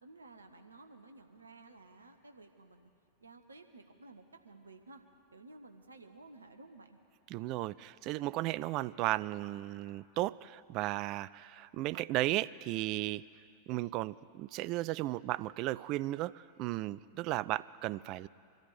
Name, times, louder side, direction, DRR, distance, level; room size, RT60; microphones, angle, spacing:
voice 1, 0.0-2.9 3.2-5.0 5.3-7.0, right 3 dB, 75° right, 6 dB, 1.1 m, -54 dB
voice 2, 7.3-13.2 13.7-18.3, right 17 dB, 40° right, 17 dB, 0.3 m, -35 dB
24.0 x 13.5 x 4.1 m, 2.5 s
figure-of-eight pair, 90°, 0 cm